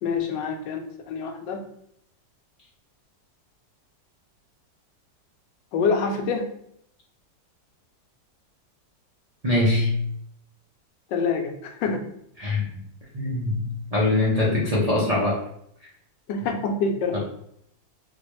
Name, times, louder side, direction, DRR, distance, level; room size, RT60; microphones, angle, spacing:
voice 1, 0.0-1.6 5.7-6.5 11.1-12.0 16.3-17.2, left 4 dB, 80° left, 4 dB, 1.2 m, -26 dB
voice 2, 9.4-10.0 12.4-12.7 13.1-13.6 13.9-15.4 17.1-17.2, left 2 dB, 60° right, -6 dB, 0.4 m, -22 dB
4.0 x 2.4 x 3.0 m, 0.71 s
omnidirectional pair, 2.0 m